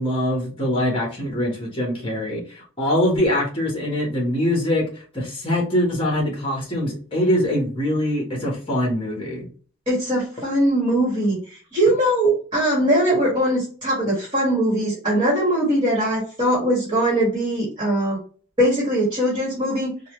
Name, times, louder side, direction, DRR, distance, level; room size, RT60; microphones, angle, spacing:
voice 1, 0.0-4.9 5.1-9.5, left 1 dB, 25° left, -1 dB, 1.4 m, -23 dB
voice 2, 9.9-11.4 11.7-18.2 18.6-19.9, right 1 dB, 25° right, -5 dB, 1.6 m, -21 dB
4.1 x 2.4 x 3.1 m, 0.41 s
head